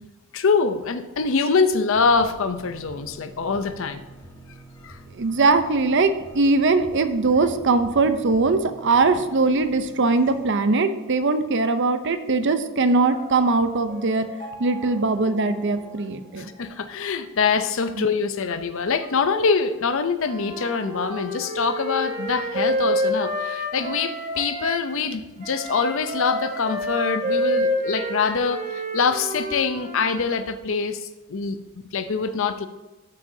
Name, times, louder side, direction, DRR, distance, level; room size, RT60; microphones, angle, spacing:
voice 1, 0.3-4.0 4.8-5.0 16.4-31.6 31.9-32.7, left 5 dB, 60° left, 9 dB, 0.6 m, -24 dB
sound 1, 1.9-10.4, right 1 dB, 20° left, 1.6 m, -46 dB
voice 2, 5.2-14.3 14.6-16.5 18.0-18.1, right 3 dB, 55° right, 10 dB, 0.7 m, -21 dB
Piano, 13.1-17.0, equal, 35° left, 1.9 m, -43 dB
Wind instrument woodwind instrument, 20.2-24.8 25.4-30.3, equal, 35° right, 1.7 m, -28 dB
13.0 x 6.8 x 2.7 m, 1.1 s
head